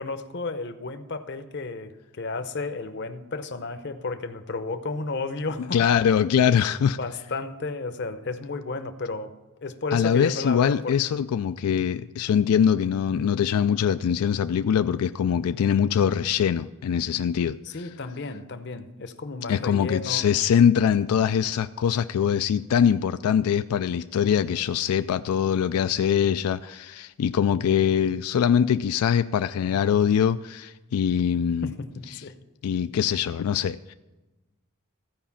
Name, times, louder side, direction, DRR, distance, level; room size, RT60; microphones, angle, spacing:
voice 1, 0.0-5.8 7.0-9.3 9.6-11.0 17.7-20.3 31.6-32.3, left 3 dB, 50° left, 0.7 m, -32 dB
voice 2, 5.7-7.0 9.9-17.6 19.5-31.7 32.1-32.2 32.6-33.9, left 8 dB, 85° left, 0.3 m, -23 dB
15.0 x 5.0 x 7.1 m
head